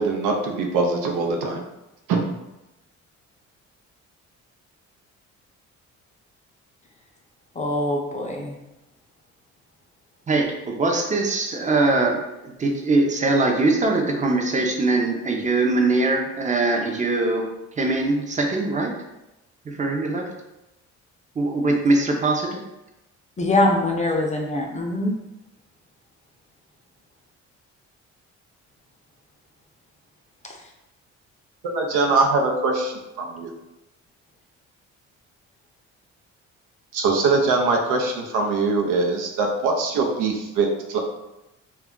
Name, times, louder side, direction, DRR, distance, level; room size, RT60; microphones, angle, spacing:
voice 1, 0.0-1.6 2.1-2.2 31.6-33.5 36.9-41.0, right 3 dB, 90° right, 2 dB, 0.6 m, -22 dB
voice 2, 7.6-8.5 23.4-25.2, left 1 dB, 25° left, 0 dB, 0.5 m, -23 dB
voice 3, 10.3-17.5 17.8-18.9 19.6-20.3 21.4-22.6, right 2 dB, 25° right, 2 dB, 0.6 m, -22 dB
2.3 x 2.2 x 3.6 m, 0.94 s
cardioid pair, 90°, 30 cm